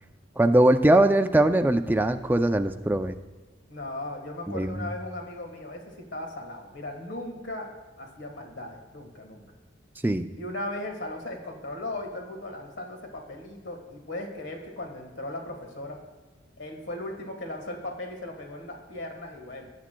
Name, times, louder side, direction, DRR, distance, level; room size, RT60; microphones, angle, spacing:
voice 1, 0.4-3.2 4.5-4.9 10.0-10.2, right 1 dB, 10° right, 8 dB, 0.3 m, -21 dB
voice 2, 3.7-7.7 8.0-9.4 10.3-16.0 16.6-19.6, left 1 dB, 70° left, 2 dB, 1.5 m, -37 dB
17.5 x 8.3 x 2.2 m, 1.3 s
head